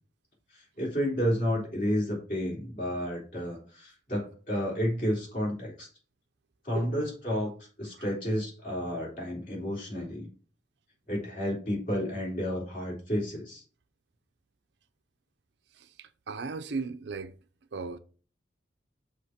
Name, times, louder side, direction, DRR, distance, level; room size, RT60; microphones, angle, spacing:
voice 1, 0.5-5.9 6.6-7.5 7.8-10.3 11.1-13.6, equal, 50° left, 3.5 m, -31 dB
voice 2, 15.7-17.4 17.7-18.0, right 4 dB, 70° right, 0.6 m, -36 dB
6.4 x 3.0 x 5.7 m
head